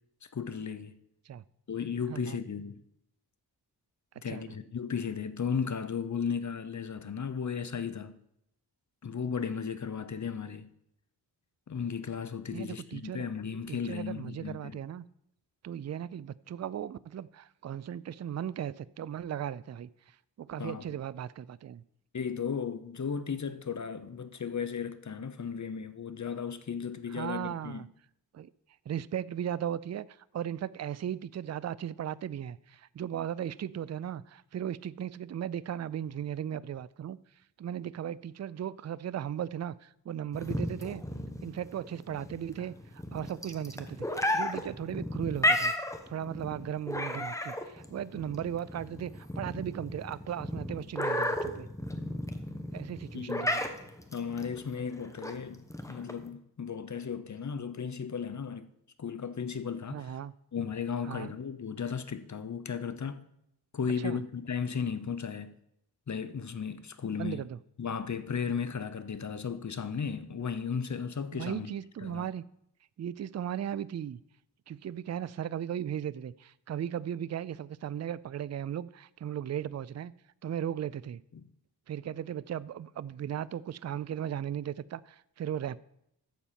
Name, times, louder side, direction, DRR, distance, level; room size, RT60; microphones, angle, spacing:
voice 1, 0.3-1.0 1.7-2.8 4.2-8.2 9.0-10.7 11.7-14.8 20.6-20.8 22.1-27.8 53.1-53.5 54.1-55.6 55.9-58.7 59.0-60.2 60.5-63.2 63.7-65.5 66.1-67.5 67.8-71.7 72.0-72.3 81.3-81.4, left 6 dB, 45° left, 0.8 m, -35 dB
voice 2, 2.1-2.4 4.2-4.4 12.5-13.2 13.7-15.0 15.6-19.9 20.4-21.8 27.1-27.9 28.3-28.5 28.9-37.2 37.6-41.0 41.4-45.7 46.1-51.7 52.7-53.6 59.9-60.3 61.0-61.3 64.0-64.2 67.2-67.6 71.3-72.4 73.0-74.2 74.7-80.1 80.4-81.2 81.9-85.8, right 10 dB, 40° right, 0.4 m, -37 dB
sound 1, 40.3-56.3, left 1 dB, 5° left, 1.1 m, -33 dB
11.5 x 4.1 x 7.5 m
cardioid pair, 65°, 42 cm